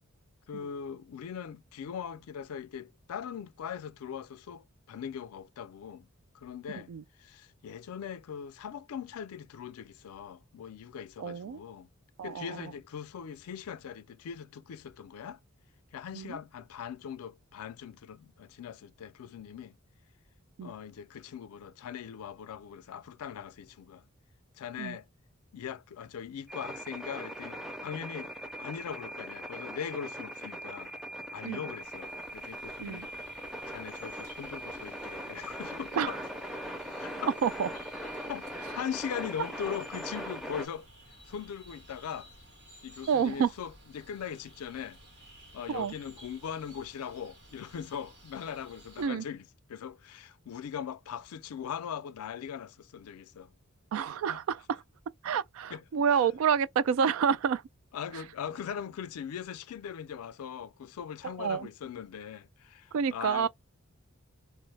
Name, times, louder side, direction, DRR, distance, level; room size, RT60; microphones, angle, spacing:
voice 1, 0.5-6.1 6.3-6.9 7.2-11.9 12.2-15.4 15.9-19.7 20.6-24.0 24.6-25.1 25.5-28.3 28.6-30.9 31.3-33.1 33.7-36.2 37.0-37.3 38.3-38.5 38.8-40.9 41.3-42.3 42.8-45.0 45.5-53.5 54.3-54.4 55.7-56.3 57.9-63.5, left 8 dB, 90° left, 0.4 m, -40 dB
voice 2, 11.2-11.6 12.2-12.7 16.1-16.4 20.6-20.7 24.8-25.0 31.4-31.6 32.8-33.1 35.9-36.1 37.4-37.7 43.1-43.5 45.7-45.9 49.0-49.2 53.9-54.8 55.2-57.6 61.2-61.7 62.9-63.5, right 7 dB, 70° right, 0.3 m, -29 dB
sound 1, 26.5-40.7, equal, ahead, 0.5 m, -40 dB
sound 2, 31.7-49.1, right 1 dB, 50° right, 1.8 m, -55 dB
2.9 x 2.0 x 3.2 m
head